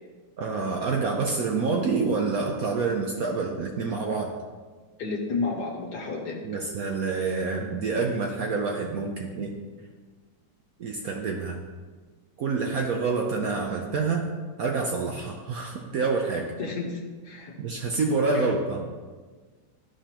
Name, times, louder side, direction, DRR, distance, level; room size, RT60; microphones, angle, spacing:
voice 1, 0.4-4.3 6.4-9.6 10.8-11.6 12.4-14.3 14.6-16.5 17.6-18.8, right 4 dB, 65° right, 1 dB, 0.9 m, -27 dB
voice 2, 5.0-6.6 16.6-17.5 18.3-18.6, left 3 dB, 60° left, -1 dB, 1.4 m, -32 dB
13.0 x 5.0 x 2.9 m, 1.4 s
omnidirectional pair, 2.1 m